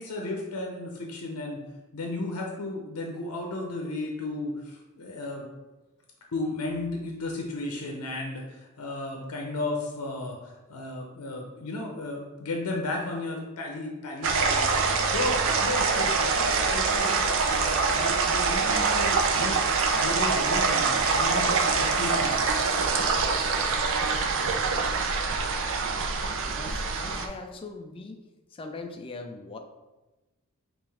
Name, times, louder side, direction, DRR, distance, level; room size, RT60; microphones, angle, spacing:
voice 1, 0.0-1.6 1.9-5.5 6.3-14.7 15.0-17.2 17.5-19.7 20.0-22.6, left 2 dB, 85° left, 1 dB, 0.6 m, -34 dB
sound 1, 14.2-27.3, right 4 dB, 60° right, 0.5 m, -25 dB
voice 2, 26.5-28.2 28.5-29.6, left 3 dB, 25° left, 5 dB, 0.3 m, -40 dB
5.4 x 2.5 x 3.3 m, 1.1 s
head